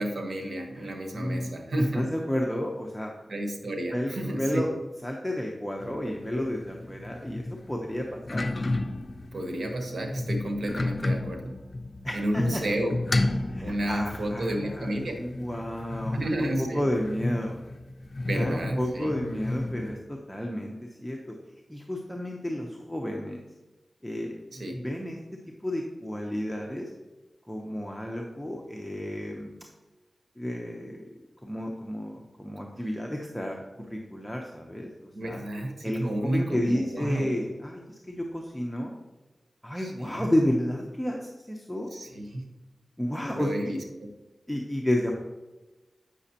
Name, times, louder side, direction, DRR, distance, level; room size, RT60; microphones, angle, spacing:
voice 1, 0.0-2.1 3.3-4.7 9.3-11.5 12.1-13.0 13.6-15.2 16.1-16.9 18.3-19.2 24.5-24.8 35.1-37.3 39.8-40.3 41.9-42.4 43.3-44.1, right 1 dB, 75° right, 4 dB, 1.1 m, -31 dB
voice 2, 1.1-3.1 3.9-4.7 5.0-8.4 12.0-12.6 13.5-17.6 18.3-20.8 21.0-21.4 21.7-23.4 24.0-26.9 27.5-29.5 30.4-31.1 31.4-35.4 35.8-38.9 39.6-41.9 43.0-43.5 44.5-45.1, left 1 dB, 5° left, 0 dB, 0.8 m, -31 dB
sound 1, 5.8-20.0, left 2 dB, 50° left, 0.4 m, -33 dB
8.2 x 6.3 x 2.9 m, 1.1 s
cardioid pair, 50°, 0 cm